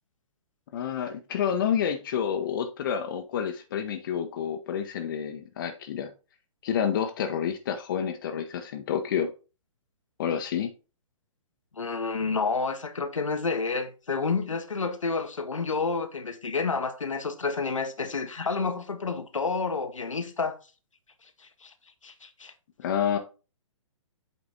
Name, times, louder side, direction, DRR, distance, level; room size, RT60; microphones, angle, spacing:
voice 1, 0.7-6.1 6.6-9.3 10.2-10.7 22.8-23.2, left 8 dB, 40° left, 0.8 m, -29 dB
voice 2, 11.7-20.6 21.2-21.7 22.0-22.5, left 4 dB, 70° left, 1.0 m, -30 dB
8.2 x 4.0 x 3.4 m
figure-of-eight pair, 120°, 17 cm